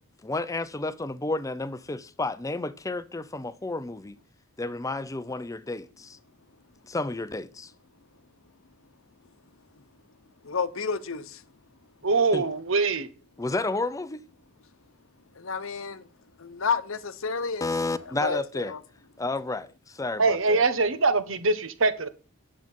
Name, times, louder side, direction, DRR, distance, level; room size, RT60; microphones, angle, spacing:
voice 1, 0.2-4.2 4.6-6.2 6.8-7.7 12.3-12.4 13.4-14.2 17.6-18.7 19.2-20.6, left 2 dB, 15° left, 0.5 m, -31 dB
voice 2, 10.4-11.4 15.4-16.0 16.4-17.7 18.2-18.8, left 5 dB, 65° left, 0.9 m, -30 dB
voice 3, 12.0-13.1 20.2-22.1, right 3 dB, 65° right, 1.2 m, -23 dB
9.6 x 7.5 x 5.4 m
head